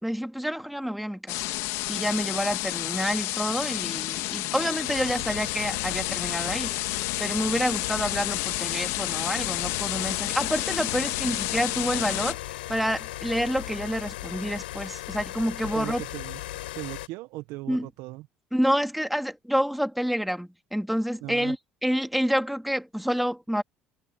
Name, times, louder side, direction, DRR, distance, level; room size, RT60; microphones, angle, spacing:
voice 1, 0.0-1.5 1.9-6.7 7.2-16.0 17.7-17.9 18.5-21.6 21.8-23.6, equal, ahead, 3.4 m, -28 dB
sound 1, 1.3-12.3, left 19 dB, 70° left, 2.1 m, -30 dB
sound 2, 4.8-17.1, left 16 dB, 85° left, 6.5 m, -37 dB
voice 2, 15.7-16.4 16.8-18.3 21.2-21.6, right 19 dB, 70° right, 1.3 m, -38 dB
hypercardioid pair, 70°, 5 cm